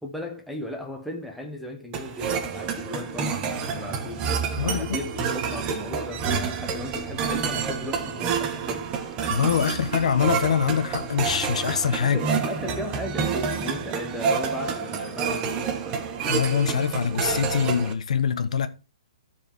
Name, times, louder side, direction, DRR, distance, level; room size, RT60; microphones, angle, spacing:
voice 1, 0.0-4.3 4.6-8.9 12.0-16.1, left 1 dB, ahead, 1.0 m, -36 dB
sound 1, 1.9-17.9, right 6 dB, 25° right, 1.4 m, -28 dB
voice 2, 9.3-12.2 16.3-18.7, left 7 dB, 70° left, 1.2 m, -24 dB
14.0 x 4.9 x 4.4 m
hypercardioid pair, 145°, 4 cm